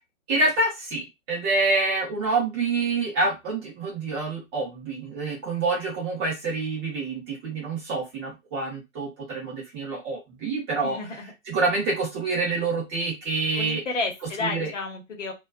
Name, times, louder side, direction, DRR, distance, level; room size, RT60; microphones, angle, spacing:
voice 1, 0.3-11.0 11.5-13.8 14.4-14.7, right 3 dB, 20° right, -3 dB, 0.7 m, -27 dB
voice 2, 10.8-11.3 13.6-15.3, left 3 dB, 65° left, 2 dB, 1.0 m, -31 dB
2.4 x 2.2 x 2.4 m, 0.22 s
figure-of-eight pair, 130°, 40 cm